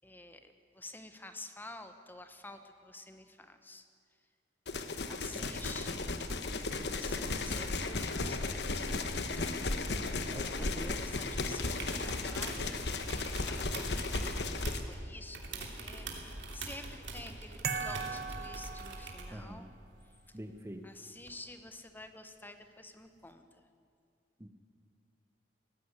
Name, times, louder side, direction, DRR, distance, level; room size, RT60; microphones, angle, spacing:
voice 1, 0.0-3.9 5.1-6.1 6.7-9.1 10.4-19.7 20.3-20.4 20.8-23.7, left 2 dB, 10° left, 8 dB, 1.1 m, -50 dB
sound 1, 4.7-14.8, left 3 dB, 70° left, 1.3 m, -35 dB
voice 2, 10.3-11.0 19.3-19.7 20.3-20.9 24.4-24.5, equal, 15° right, 7 dB, 0.9 m, -45 dB
sound 2, 11.4-12.7 13.0-15.0 15.3-19.4 21.3-21.4, right 3 dB, 85° right, 3.0 m, -44 dB
sound 3, 17.6-19.5, right 5 dB, 55° right, 1.3 m, -38 dB
18.5 x 15.0 x 9.6 m, 2.2 s
head